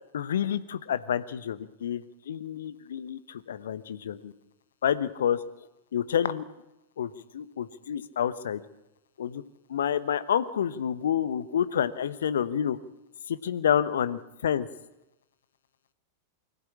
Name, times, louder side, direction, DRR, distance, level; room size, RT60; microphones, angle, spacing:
voice 1, 0.1-4.3 4.8-5.4 5.9-6.4 7.0-8.6 9.2-9.4 9.7-12.8 13.3-14.7, left 9 dB, 65° left, 14 dB, 1.0 m, -28 dB
24.0 x 14.0 x 8.6 m, 0.97 s
figure-of-eight pair, 90°, 0 cm